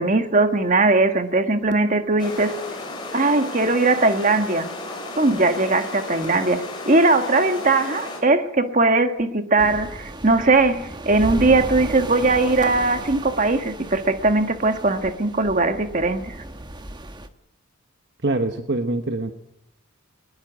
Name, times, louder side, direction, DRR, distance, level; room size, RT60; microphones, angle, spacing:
voice 1, 0.0-2.5 3.1-4.7 5.2-16.3, right 3 dB, 35° right, 8 dB, 1.6 m, -20 dB
sound 1, 2.2-8.2, left 2 dB, 20° left, 5.8 m, -34 dB
sound 2, 9.6-17.3, right 1 dB, 20° right, 1.2 m, -35 dB
voice 2, 18.2-19.3, right 2 dB, 50° right, 7 dB, 1.2 m, -24 dB
20.5 x 20.5 x 8.2 m, 0.82 s
head